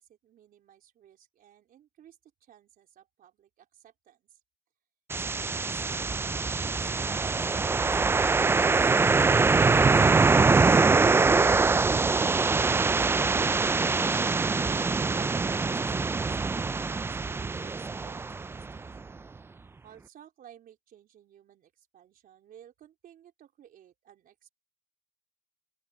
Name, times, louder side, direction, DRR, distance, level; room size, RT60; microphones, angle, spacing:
voice 1, 0.0-4.4 5.3-13.8 14.6-19.0 19.8-24.5, right 10 dB, 60° right, 4.0 m, -55 dB
sound 1, 5.1-19.0, right 4 dB, 15° right, 0.3 m, -24 dB
open air
cardioid pair, 110°, 17 cm